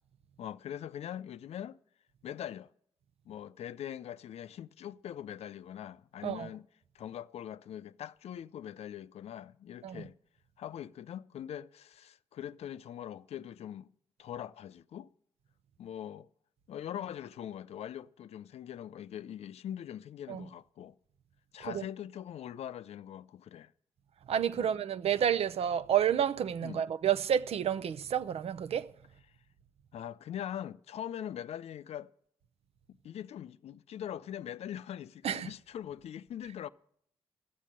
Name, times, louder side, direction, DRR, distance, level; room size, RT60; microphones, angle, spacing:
voice 1, 0.4-1.8 2.2-2.7 3.3-6.7 6.9-10.1 10.6-13.9 14.2-15.1 15.8-16.3 16.7-20.9 21.5-23.7 24.6-24.7 26.6-26.8 29.9-32.1 33.0-36.7, left 10 dB, 70° left, 0.5 m, -42 dB
voice 2, 24.3-28.9 35.2-35.5, right 9 dB, 65° right, 0.6 m, -30 dB
12.5 x 7.5 x 9.8 m
cardioid pair, 65°, 11 cm